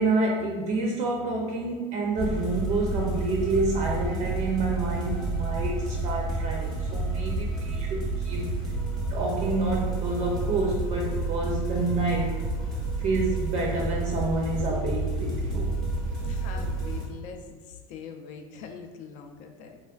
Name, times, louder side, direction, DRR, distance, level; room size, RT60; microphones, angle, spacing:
voice 1, 0.0-8.5 9.1-12.4 13.0-15.7, right 3 dB, 40° right, -1 dB, 0.4 m, -28 dB
sound 1, 2.2-17.1, right 2 dB, 5° left, 0.8 m, -30 dB
voice 2, 16.2-19.8, left 6 dB, 50° left, 4 dB, 0.4 m, -43 dB
3.1 x 2.3 x 2.3 m, 1.4 s
hypercardioid pair, 100°, 16 cm